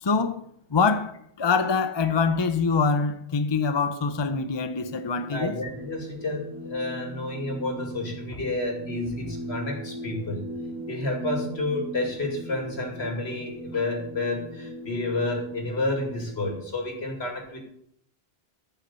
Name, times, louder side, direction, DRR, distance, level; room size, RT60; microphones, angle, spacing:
voice 1, 0.0-1.1 1.4-5.5, left 5 dB, 30° left, 0.7 m, -24 dB
sound 1, 4.9-16.5, right 1 dB, 15° right, 2.9 m, -39 dB
voice 2, 5.3-10.5 10.9-17.6, left 2 dB, 75° left, 2.8 m, -30 dB
14.5 x 5.8 x 6.9 m
omnidirectional pair, 1.1 m